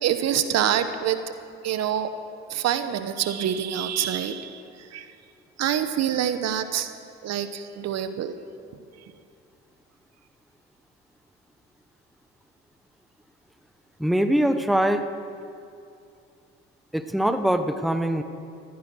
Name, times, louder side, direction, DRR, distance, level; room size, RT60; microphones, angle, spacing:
voice 1, 0.0-1.3 1.6-2.1 2.5-5.1 5.6-6.9 7.2-8.3, right 9 dB, 60° right, 11 dB, 1.1 m, -26 dB
voice 2, 14.0-15.0 16.9-18.2, right 1 dB, ahead, 9 dB, 1.0 m, -22 dB
15.0 x 14.5 x 6.3 m, 2.5 s
supercardioid pair, 65°, 30 cm